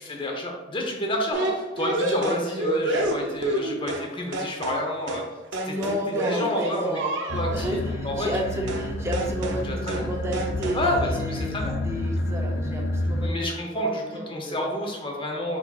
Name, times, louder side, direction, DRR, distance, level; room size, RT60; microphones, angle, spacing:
voice 1, 0.0-5.4 5.6-5.7 6.1-7.0 7.3-7.8 8.0-8.9 9.6-10.1 10.7-11.7 12.2-12.3 13.2-15.6, left 1 dB, 30° left, 1 dB, 0.7 m, -29 dB
sound 1, 1.3-4.1 4.3-4.8 5.1-5.3 5.5-7.6 8.7-8.9 9.1-9.6 9.9-10.1 10.3-10.8, right 1 dB, 85° right, 0.6 m, -29 dB
voice 2, 5.6-11.6 11.9-14.7, equal, 15° right, 0 dB, 0.6 m, -32 dB
sound 2, 7.3-13.3, left 1 dB, 85° left, 0.5 m, -29 dB
4.7 x 4.1 x 2.4 m, 1.2 s
head